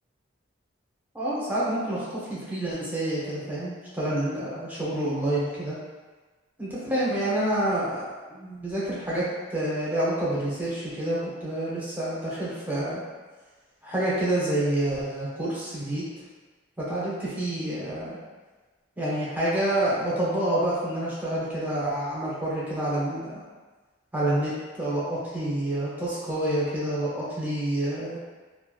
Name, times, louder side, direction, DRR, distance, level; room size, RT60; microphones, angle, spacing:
voice 1, 1.1-5.8 6.6-13.0 13.8-16.0 16.8-18.2 19.0-23.4 24.1-28.2, right 1 dB, 10° right, -8 dB, 0.6 m, -28 dB
2.8 x 2.2 x 2.3 m, 1.3 s
head